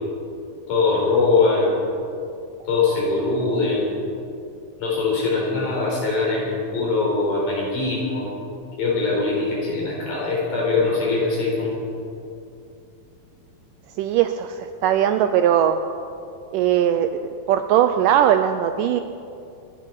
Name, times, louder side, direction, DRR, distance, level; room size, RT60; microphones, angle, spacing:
voice 1, 0.7-1.8 2.7-3.9 4.8-6.5 6.7-8.3 8.8-11.7, left 3 dB, 60° left, -4 dB, 5.9 m, -22 dB
voice 2, 14.0-15.8 16.5-17.1 17.5-19.0, right 10 dB, 80° right, 8 dB, 2.0 m, -19 dB
26.5 x 10.5 x 4.7 m, 2.6 s
omnidirectional pair, 4.2 m